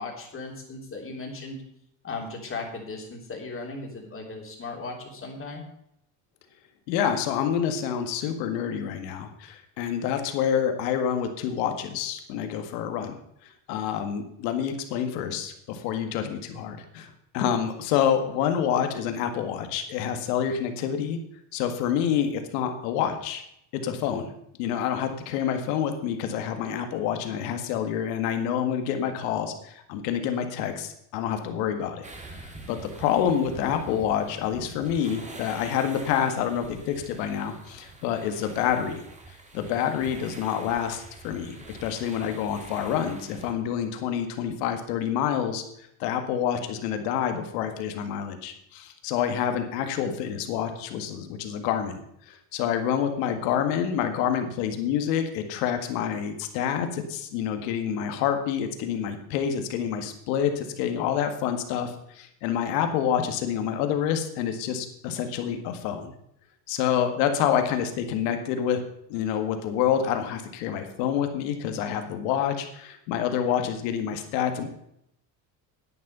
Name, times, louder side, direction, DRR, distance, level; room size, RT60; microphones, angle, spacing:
voice 1, 0.0-1.6 2.0-5.6, left 3 dB, 25° left, 1 dB, 3.4 m, -37 dB
voice 2, 6.9-13.2 13.4-21.2 21.5-23.4 23.7-24.3 24.6-39.0 39.5-45.6 46.0-66.1 66.7-68.8 69.1-74.7, left 8 dB, 90° left, 6 dB, 1.8 m, -27 dB
sound 1, 32.0-43.5, right 2 dB, 15° right, 1.8 m, -45 dB
10.0 x 9.9 x 5.5 m, 0.74 s
cardioid pair, 130°, 47 cm